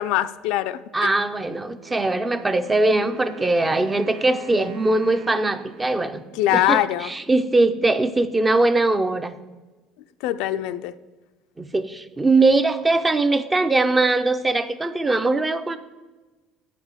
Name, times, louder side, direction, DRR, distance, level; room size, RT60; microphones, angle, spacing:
voice 1, 0.0-1.1 6.4-7.1 10.2-10.9, left 13 dB, 70° left, 12 dB, 0.4 m, -23 dB
voice 2, 0.9-6.2 6.5-9.3 11.6-15.8, right 2 dB, 10° right, 11 dB, 0.4 m, -21 dB
Wind instrument woodwind instrument, 1.8-6.8, right 6 dB, 75° right, 1.2 m, -43 dB
7.9 x 5.8 x 7.2 m, 1.2 s
cardioid pair, 165°, 0 cm